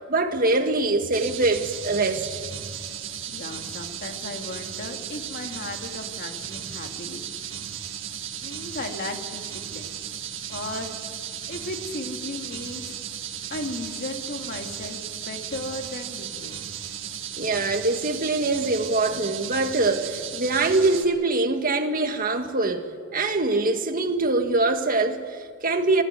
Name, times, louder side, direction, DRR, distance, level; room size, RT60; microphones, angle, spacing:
voice 1, 0.1-2.4 17.4-26.0, right 2 dB, 45° right, 1.8 m, -23 dB
sound 1, 1.1-21.0, right 9 dB, 75° right, 2.0 m, -35 dB
voice 2, 3.3-7.3 8.4-9.9 10.5-12.9 13.5-16.5, left 2 dB, 50° left, 2.5 m, -36 dB
21.0 x 15.5 x 9.5 m
head